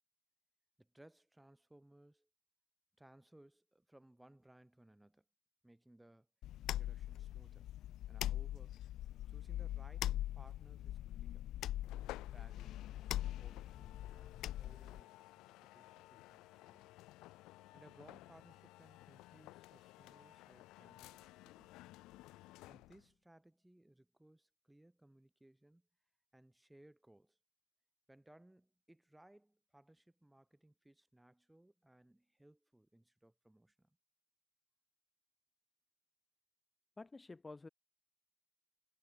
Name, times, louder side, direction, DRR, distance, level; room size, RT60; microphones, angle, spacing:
voice 1, 0.8-2.3 3.0-5.2 5.6-6.3 6.7-7.7 8.1-8.8 9.3-11.4 12.3-16.9 17.7-21.8 22.7-25.9 26.3-27.4 28.1-34.0, right 1 dB, 5° right, 4.5 m, -64 dB
sound 1, 6.4-15.0, left 13 dB, 55° left, 0.9 m, -42 dB
sound 2, 11.8-23.1, left 18 dB, 80° left, 2.3 m, -57 dB
voice 2, 37.0-37.7, left 3 dB, 10° left, 2.4 m, -50 dB
cardioid pair, 175°, 0 cm